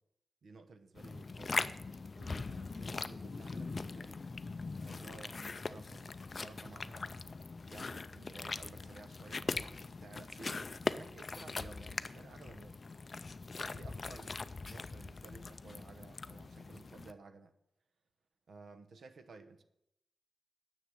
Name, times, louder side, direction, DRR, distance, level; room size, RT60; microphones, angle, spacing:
voice 1, 0.4-1.8 2.1-4.2 4.8-7.1 7.7-12.8 13.6-17.6 18.5-19.6, right 3 dB, 65° right, 0.9 m, -55 dB
sound 1, 1.0-17.1, left 3 dB, 35° left, 0.4 m, -41 dB
10.0 x 7.3 x 7.6 m
wide cardioid pair, 175°, 0 cm